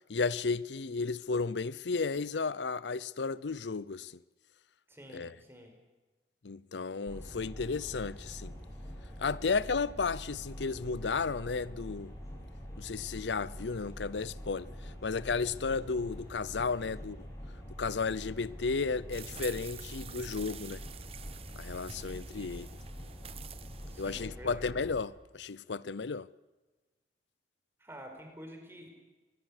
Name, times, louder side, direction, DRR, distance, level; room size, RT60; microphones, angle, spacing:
voice 1, 0.1-4.1 5.1-5.3 6.4-8.5 9.2-12.1 12.8-17.3 17.8-20.8 21.6-22.7 24.0-26.3, left 4 dB, 90° left, 0.6 m, -33 dB
voice 2, 4.9-5.7 7.1-7.2 16.7-16.8 22.4-22.6 23.9-24.6 27.8-28.9, equal, 15° right, 5.1 m, -49 dB
sound 1, 7.0-25.0, equal, 20° left, 5.8 m, -45 dB
sound 2, 19.1-24.3, right 8 dB, 35° right, 0.9 m, -48 dB
24.5 x 21.0 x 6.6 m
head